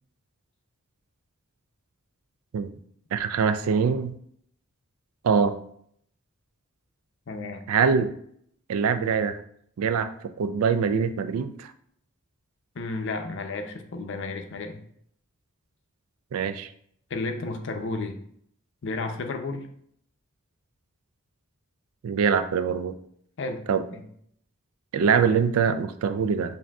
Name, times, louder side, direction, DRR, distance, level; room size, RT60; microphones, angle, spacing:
voice 1, 3.1-4.1 5.2-5.6 7.7-8.1 8.7-9.4 9.8-11.7 16.3-16.7 22.0-22.9 23.7-23.8 24.9-26.6, right 6 dB, 75° right, 11 dB, 0.4 m, -24 dB
voice 2, 7.3-7.6 12.8-14.8 17.1-18.2 18.8-19.7 23.4-23.6 23.9-24.0, left 3 dB, 55° left, 6 dB, 0.5 m, -32 dB
7.1 x 2.6 x 2.3 m, 0.67 s
head